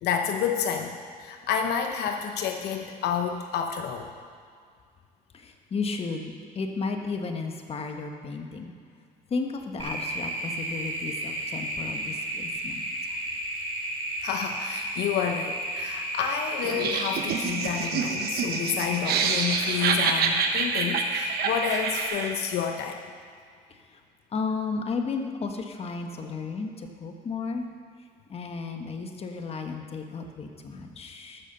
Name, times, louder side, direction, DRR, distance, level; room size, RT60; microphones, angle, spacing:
voice 1, 0.0-4.1 14.2-23.0, left 7 dB, 75° left, 5 dB, 0.8 m, -29 dB
voice 2, 5.3-8.7 9.3-12.8 24.3-27.6 28.3-31.4, left 4 dB, 35° left, 4 dB, 1.2 m, -33 dB
sound 1, 9.8-22.1, right 1 dB, 30° right, 2.6 m, -32 dB
Laughter, 16.6-22.5, right 6 dB, 65° right, 1.0 m, -28 dB
13.5 x 6.5 x 6.7 m, 2.1 s
cardioid pair, 110°, 17 cm